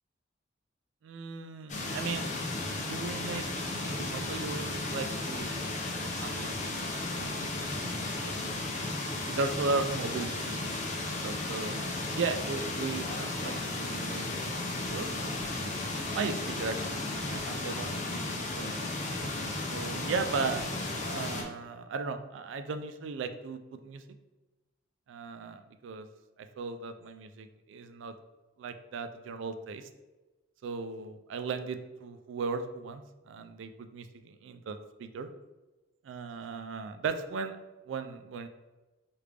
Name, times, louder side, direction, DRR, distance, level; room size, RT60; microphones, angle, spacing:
voice 1, 1.0-2.3 2.8-5.5 6.0-7.7 8.2-8.4 9.3-10.9 11.2-11.8 12.1-14.2 14.9-15.1 16.1-18.9 19.7-20.6 21.1-24.0 25.1-26.1 26.4-28.1 28.6-29.9 30.6-35.3 36.0-37.6 37.9-38.5, right 4 dB, 75° right, 8 dB, 0.3 m, -37 dB
sound 1, 1.7-21.4, left 2 dB, 40° left, 0.5 m, -34 dB
3.3 x 2.5 x 3.2 m, 1.1 s
head